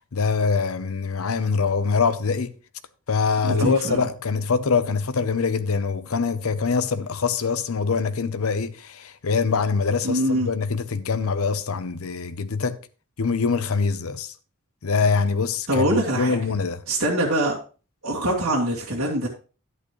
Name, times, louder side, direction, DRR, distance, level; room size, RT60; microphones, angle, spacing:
voice 1, 0.1-2.5 3.1-12.8 13.2-14.3 14.8-15.9 16.2-16.8, left 5 dB, 75° left, 0.7 m, -24 dB
voice 2, 3.4-4.0 10.0-10.5 15.7-16.4 16.9-17.6 18.0-19.3, right 1 dB, 65° right, 2.4 m, -23 dB
11.0 x 8.7 x 3.1 m
head